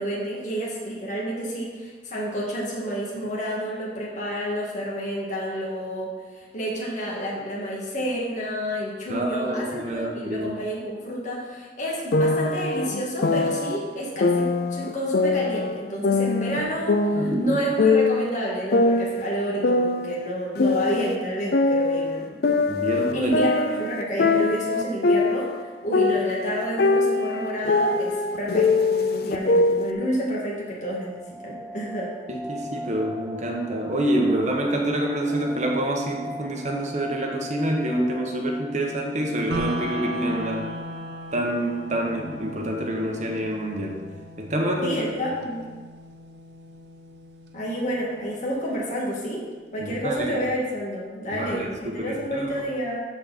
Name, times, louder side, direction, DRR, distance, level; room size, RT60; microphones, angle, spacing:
voice 1, 0.0-6.1 6.4-22.4 23.1-32.1 44.8-45.7 47.5-49.4 49.7-53.0, equal, 45° left, -4 dB, 2.1 m, -29 dB
voice 2, 9.1-10.5 17.1-17.6 22.7-23.4 32.3-40.6 41.3-44.0 44.4-45.0 49.8-50.4 51.3-52.5, right 1 dB, 45° right, 0 dB, 1.2 m, -27 dB
sound 1, 12.1-13.8 14.2-15.8 16.0-18.3 18.7-21.2 21.5-25.6 25.9-29.9, left 3 dB, 60° left, 0.5 m, -22 dB
sound 2, 31.0-41.8 42.0-42.1 42.5-42.7 43.1-43.6 44.1-44.2 44.3-44.9 45.2-45.3, equal, 10° right, 0.8 m, -41 dB
sound 3, 39.5-49.5, right 1 dB, 75° right, 0.8 m, -37 dB
13.0 x 4.5 x 4.2 m, 1.4 s
head